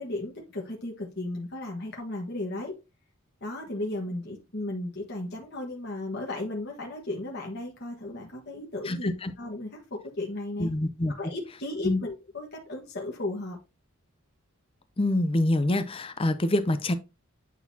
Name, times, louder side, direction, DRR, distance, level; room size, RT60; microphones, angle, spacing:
voice 1, 0.0-2.7 3.4-9.1 9.4-10.7 11.2-13.6, left 2 dB, 50° left, 1.4 m, -35 dB
voice 2, 8.9-9.3 10.6-11.1 11.8-12.0 15.0-16.9, left 1 dB, 25° left, 0.6 m, -26 dB
9.4 x 3.9 x 2.8 m
head